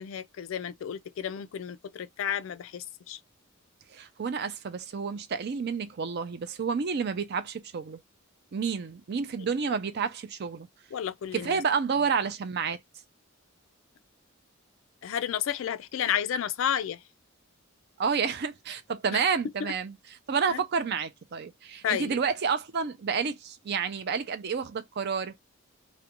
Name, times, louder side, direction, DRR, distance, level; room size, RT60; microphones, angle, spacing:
voice 1, 0.0-3.2 9.4-9.5 10.9-11.6 15.0-17.0 19.1-19.2 19.6-19.7 20.5-20.6 21.8-22.2, left 9 dB, 65° left, 0.3 m, -31 dB
voice 2, 3.9-8.0 8.5-10.7 11.3-12.8 18.0-19.9 20.3-25.4, right 6 dB, 50° right, 0.4 m, -30 dB
2.4 x 2.1 x 2.8 m
head